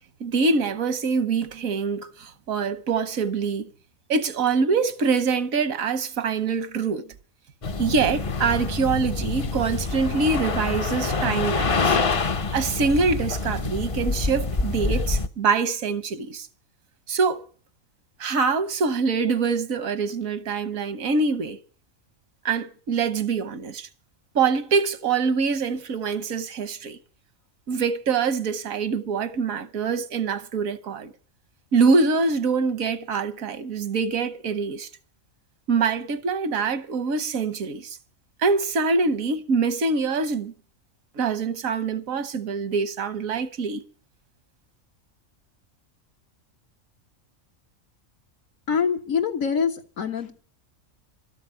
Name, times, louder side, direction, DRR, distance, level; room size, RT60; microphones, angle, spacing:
voice 1, 0.2-3.7 4.1-7.1 7.8-12.0 12.5-16.5 17.1-17.4 18.2-21.6 22.4-23.9 24.3-27.0 27.7-31.1 31.7-34.9 35.7-38.0 38.4-40.5 41.1-43.8, right 4 dB, 85° right, 1.5 m, -24 dB
sound 1, 7.6-15.3, left 4 dB, 35° left, 0.5 m, -26 dB
voice 2, 48.7-50.3, left 6 dB, 80° left, 1.9 m, -25 dB
13.0 x 7.3 x 9.5 m
omnidirectional pair, 1.4 m